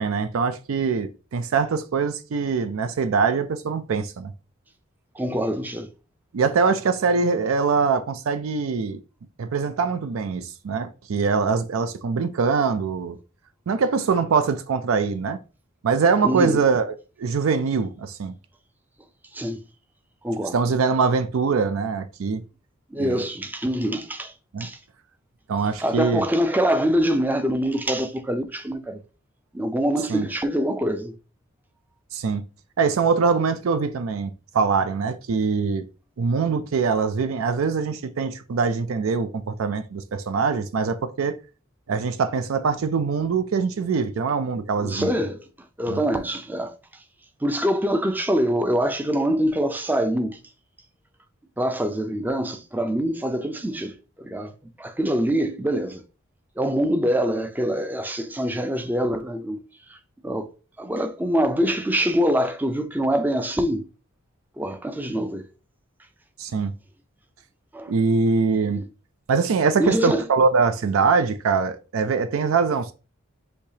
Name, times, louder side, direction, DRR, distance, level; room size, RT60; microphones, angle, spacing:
voice 1, 0.0-4.3 6.3-9.0 9.4-13.2 13.7-15.4 15.8-18.3 20.5-22.4 23.0-23.2 24.5-24.7 25.5-26.2 30.1-30.3 32.1-32.4 32.8-35.9 36.2-41.3 41.9-45.1 45.9-46.0 66.4-66.7 67.9-68.8 69.3-72.9, right 5 dB, 75° right, 0.4 m, -23 dB
voice 2, 5.2-5.9 16.2-16.6 19.3-19.6 20.2-20.5 22.9-24.3 24.6-24.8 25.8-29.0 29.5-31.1 44.8-45.5 45.8-46.8 47.4-50.4 51.6-54.5 54.8-56.0 56.6-59.6 59.9-60.0 60.2-60.5 60.8-63.9 64.6-65.4 67.7-67.9 68.7-68.8 69.8-70.2, equal, 10° right, 0.4 m, -24 dB
6.4 x 2.7 x 2.8 m
head